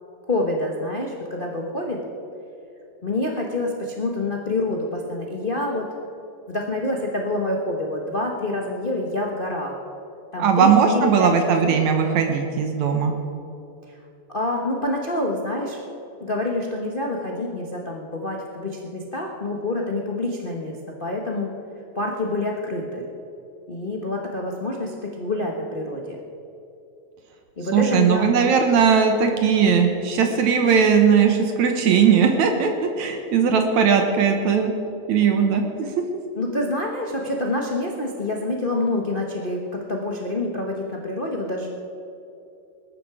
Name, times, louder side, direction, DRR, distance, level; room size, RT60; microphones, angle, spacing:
voice 1, 0.3-2.0 3.0-5.9 6.5-9.7 10.3-11.3 11.6-11.8 14.3-15.9 16.2-21.5 21.9-23.0 23.7-26.2 27.6-28.3 36.3-41.7, left 2 dB, 70° left, 0 dB, 0.5 m, -27 dB
voice 2, 10.4-13.1 27.7-32.7 33.0-34.7 35.1-35.6, right 6 dB, 75° right, 4 dB, 2.4 m, -18 dB
20.5 x 11.5 x 4.9 m, 2.8 s
omnidirectional pair, 3.3 m